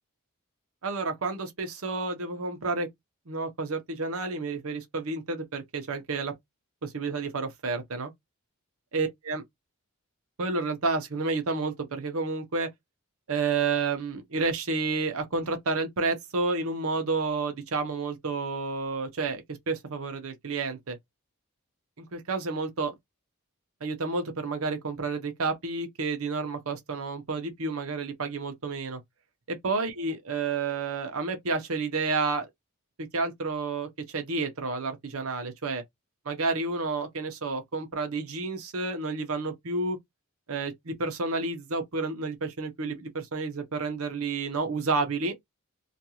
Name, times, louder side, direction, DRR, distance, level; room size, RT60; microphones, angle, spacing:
voice 1, 0.8-2.9 3.3-6.3 6.8-8.1 8.9-9.4 10.4-12.7 13.3-21.0 22.0-22.9 23.8-29.0 29.5-32.5 33.1-35.8 36.3-40.0 40.5-45.4, right 3 dB, 70° right, 0.8 m, -30 dB
2.5 x 2.4 x 2.8 m
head